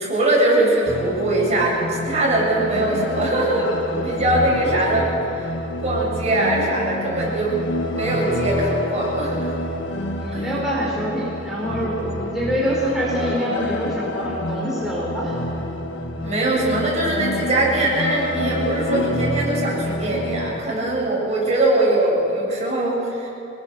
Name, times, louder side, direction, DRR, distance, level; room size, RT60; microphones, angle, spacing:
voice 1, 0.0-5.5 5.8-7.6 7.9-9.5 10.3-10.6 16.2-23.3, right 1 dB, 35° right, -4 dB, 7.6 m, -21 dB
sound 1, 0.9-20.6, left 1 dB, 70° left, 1.7 m, -28 dB
voice 2, 10.2-15.4, equal, ahead, -6 dB, 4.5 m, -25 dB
25.5 x 21.0 x 6.8 m, 2.7 s
head